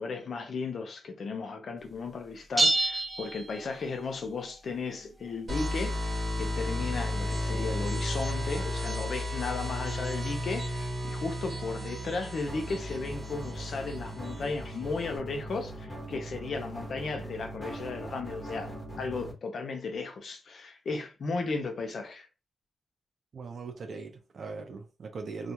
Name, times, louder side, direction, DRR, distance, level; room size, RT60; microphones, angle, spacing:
voice 1, 0.0-22.3, left 4 dB, 65° left, 0.6 m, -35 dB
sound 1, 2.6-4.2, right 2 dB, 5° right, 0.5 m, -28 dB
sound 2, 5.5-15.2, left 1 dB, 30° right, 1.1 m, -33 dB
sound 3, 12.5-19.3, right 1 dB, 20° left, 1.0 m, -41 dB
voice 2, 23.3-25.5, right 4 dB, 65° right, 0.5 m, -40 dB
2.4 x 2.2 x 2.8 m
cardioid pair, 90°, 0 cm